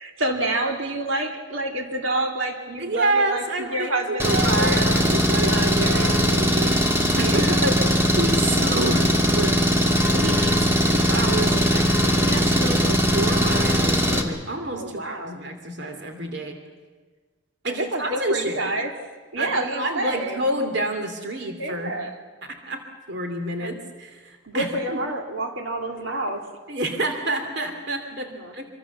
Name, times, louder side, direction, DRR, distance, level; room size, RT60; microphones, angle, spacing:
voice 1, 0.0-4.9 5.4-6.2 7.2-7.6 10.7-10.9 14.7-15.4 17.7-19.0 19.3-20.4 21.6-22.2 23.6-23.7 24.4-26.5 28.1-28.5, right 2 dB, 80° right, 3 dB, 3.0 m, -28 dB
voice 2, 2.8-16.6 17.6-18.7 19.4-21.9 22.4-22.8 23.1-25.0 26.7-28.7, right 1 dB, 55° right, 5 dB, 2.8 m, -29 dB
Engine, 4.2-14.2, equal, 10° right, 2.2 m, -20 dB
26.0 x 24.5 x 7.2 m, 1.4 s
head